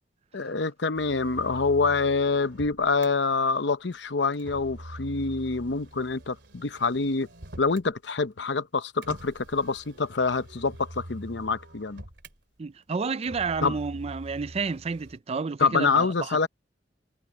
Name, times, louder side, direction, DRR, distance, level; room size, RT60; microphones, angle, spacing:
voice 1, 0.3-7.3 7.6-12.0 13.6-13.8 15.6-16.5, left 4 dB, 70° left, 0.8 m, -26 dB
Motor vehicle (road), 0.9-3.1 4.3-7.9 9.0-12.4 13.2-15.2, right 1 dB, 70° right, 3.2 m, -44 dB
voice 2, 12.6-16.5, right 4 dB, 35° right, 0.4 m, -31 dB
head